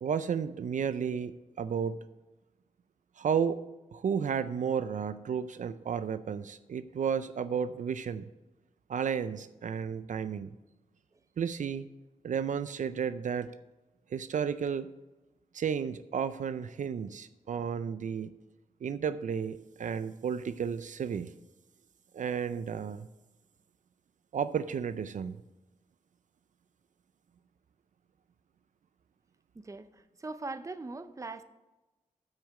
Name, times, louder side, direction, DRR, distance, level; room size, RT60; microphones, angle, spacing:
voice 1, 0.0-2.0 3.2-3.6 3.9-8.2 8.9-10.5 11.4-11.9 12.2-13.6 14.1-14.9 15.5-18.3 18.8-21.3 22.1-23.1 24.3-25.4, right 7 dB, 70° right, 13 dB, 0.4 m, -32 dB
voice 2, 29.5-31.4, right 3 dB, 25° right, 12 dB, 0.6 m, -41 dB
8.3 x 6.4 x 7.1 m, 1.1 s
wide cardioid pair, 110°, 13 cm